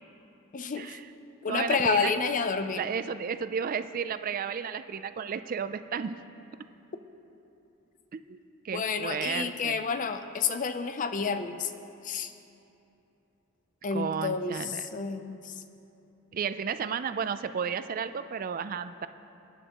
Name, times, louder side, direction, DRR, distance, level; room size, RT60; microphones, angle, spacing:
voice 1, 0.5-1.0 1.4-2.8 8.7-11.7 12.0-12.3 13.8-15.5, left 5 dB, 35° left, 9 dB, 0.5 m, -30 dB
voice 2, 1.5-2.1 2.8-6.2 8.1-8.4 8.6-9.8 13.9-14.8 16.3-19.1, right 6 dB, 40° right, 12 dB, 0.3 m, -33 dB
25.5 x 10.0 x 3.0 m, 2.8 s
head